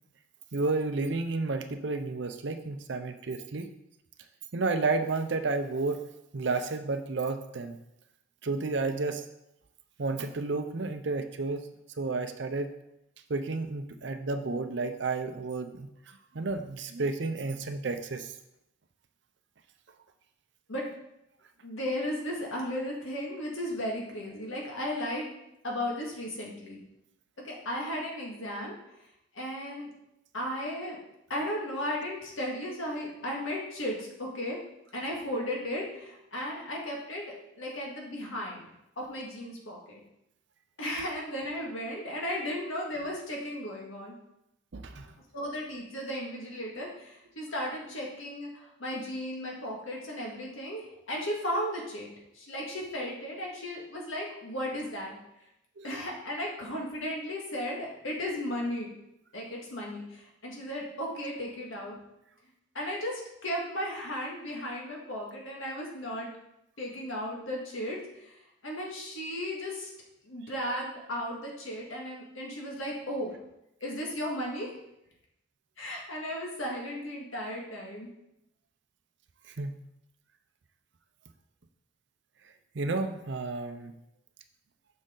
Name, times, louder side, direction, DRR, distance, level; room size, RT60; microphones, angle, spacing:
voice 1, 0.5-3.7 4.5-6.0 6.3-7.8 8.4-9.2 10.0-11.7 12.0-12.7 13.3-15.9 16.3-18.3 44.7-45.1 55.8-55.9 79.6-79.7 82.7-83.9, right 3 dB, 55° right, 8 dB, 0.6 m, -31 dB
voice 2, 21.6-25.3 25.6-26.8 27.4-28.7 29.3-29.9 30.3-31.0 31.3-34.6 34.9-37.2 37.6-38.7 39.0-40.0 40.8-44.1 45.3-55.1 55.8-58.9 59.3-62.0 62.7-66.3 66.8-69.9 70.2-73.4 73.8-74.8 75.8-78.1, equal, 75° left, -1 dB, 1.8 m, -35 dB
6.5 x 6.3 x 3.8 m, 0.84 s
head